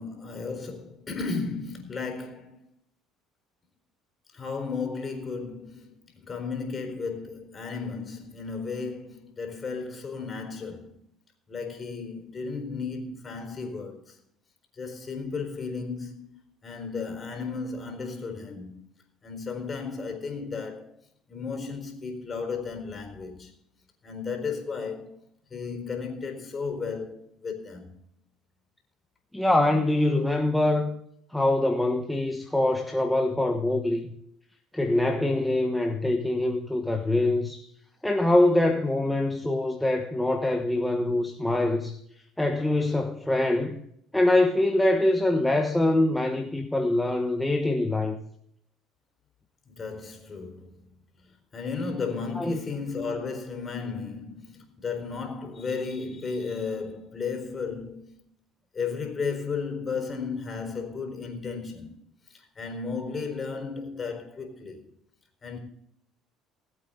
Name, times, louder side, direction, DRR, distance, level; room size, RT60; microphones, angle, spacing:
voice 1, 0.0-2.6 4.3-11.0 11.5-14.2 14.7-16.3 16.6-18.8 19.2-20.9 21.3-23.5 24.0-25.2 25.5-28.0 49.7-58.3 58.7-62.0 62.3-64.9 65.4-65.6, left 4 dB, 30° left, 4.2 m, -34 dB
voice 2, 29.3-31.0 31.3-34.1 34.7-37.7 38.0-42.0 42.4-43.8 44.1-48.2 52.4-52.6, left 1 dB, 5° left, 1.3 m, -24 dB
20.0 x 8.3 x 3.9 m
supercardioid pair, 95°, 0 cm